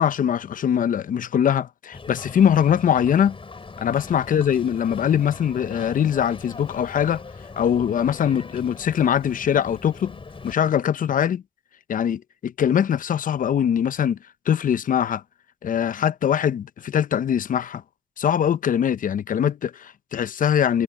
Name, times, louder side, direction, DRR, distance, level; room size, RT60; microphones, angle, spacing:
voice 1, 0.0-3.4 3.8-7.2 7.6-10.2 10.4-11.4 11.9-14.2 14.5-15.2 15.6-17.8 18.2-20.8, left 9 dB, 60° left, 0.8 m, -22 dB
Boat Water vehicle, 1.9-10.5, left 4 dB, 35° left, 3.6 m, -40 dB
supercardioid pair, 55°, 16 cm